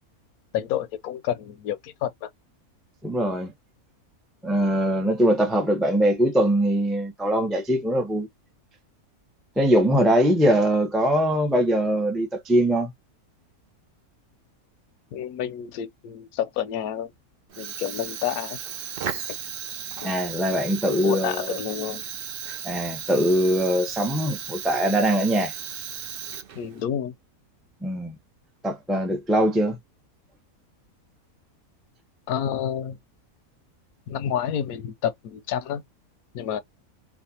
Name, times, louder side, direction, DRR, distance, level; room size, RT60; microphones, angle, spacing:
voice 1, 0.5-2.3 9.9-10.0 15.1-17.1 17.6-18.6 20.0-20.1 20.9-22.0 26.6-27.1 32.3-33.0 34.1-35.8 36.3-36.6, left 9 dB, 80° left, 1.1 m, -29 dB
voice 2, 3.0-3.5 4.4-8.3 9.6-12.9 20.0-21.6 22.6-25.5 27.8-28.2 28.6-29.8, right 1 dB, ahead, 0.5 m, -22 dB
Fire, 17.5-26.8, right 8 dB, 60° right, 0.6 m, -35 dB
4.1 x 2.4 x 2.8 m
omnidirectional pair, 1.6 m